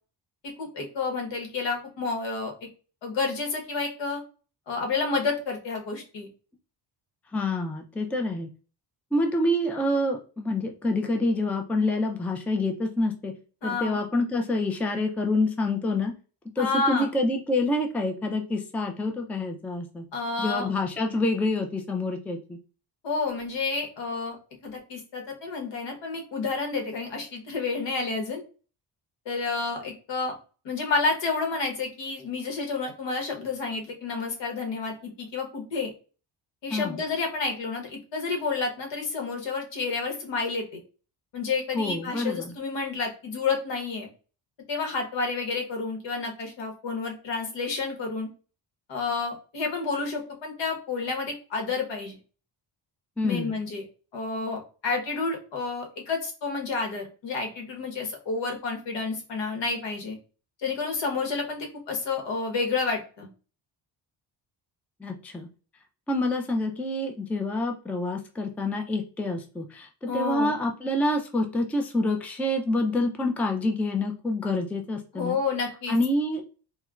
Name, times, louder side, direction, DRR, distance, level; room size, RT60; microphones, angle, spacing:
voice 1, 0.6-2.5 3.0-4.2 4.7-6.3 13.6-14.0 16.6-17.1 20.1-20.7 23.0-24.4 24.6-28.4 29.2-30.3 30.6-35.9 36.6-40.8 41.3-44.1 44.7-48.3 48.9-52.2 53.2-53.8 54.1-60.2 60.6-63.3 70.1-70.6 75.1-76.0, left 4 dB, 70° left, 2 dB, 1.3 m, -30 dB
voice 2, 7.3-8.5 9.1-13.3 13.6-16.1 16.6-20.0 20.4-22.6 36.7-37.0 41.8-42.5 53.2-53.5 65.0-65.5 66.1-75.4 75.9-76.4, left 2 dB, 5° left, 3 dB, 0.4 m, -27 dB
4.2 x 2.1 x 2.4 m, 0.36 s
cardioid pair, 105°, 44 cm